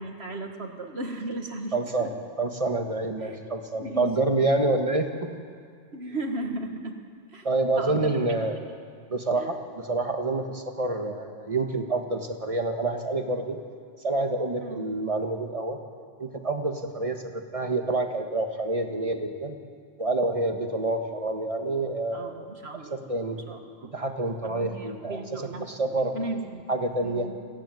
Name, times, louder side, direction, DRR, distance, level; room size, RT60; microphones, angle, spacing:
voice 1, 0.0-2.1 3.2-3.4 3.7-4.3 5.9-6.9 7.3-7.5 7.8-8.2 9.4-9.6 14.6-14.8 22.1-23.9 24.4-25.9 26.1-26.6 27.0-27.3, right 2 dB, 70° right, 4 dB, 2.1 m, -36 dB
voice 2, 1.7-2.1 2.4-5.3 7.4-8.6 9.1-13.6 14.0-15.8 16.2-19.5 20.0-22.4 22.9-23.4 23.9-26.1 26.7-27.3, right 2 dB, 30° right, 5 dB, 1.7 m, -27 dB
23.5 x 16.0 x 9.3 m, 2.1 s
omnidirectional pair, 1.1 m